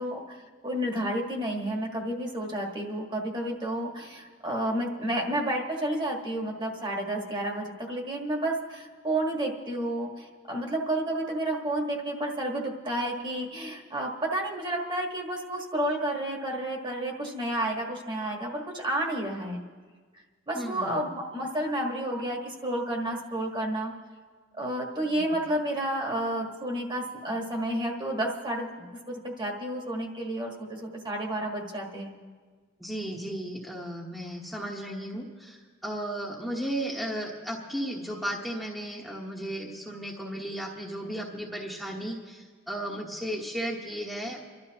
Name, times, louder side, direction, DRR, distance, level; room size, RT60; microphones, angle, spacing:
voice 1, 0.0-19.7 20.5-23.9 24.5-32.2, right 1 dB, 25° right, 0 dB, 1.5 m, -31 dB
voice 2, 20.5-21.0 25.0-25.3 32.8-35.6 35.8-44.4, right 1 dB, ahead, -3 dB, 1.2 m, -35 dB
29.5 x 12.0 x 2.9 m, 1.5 s
head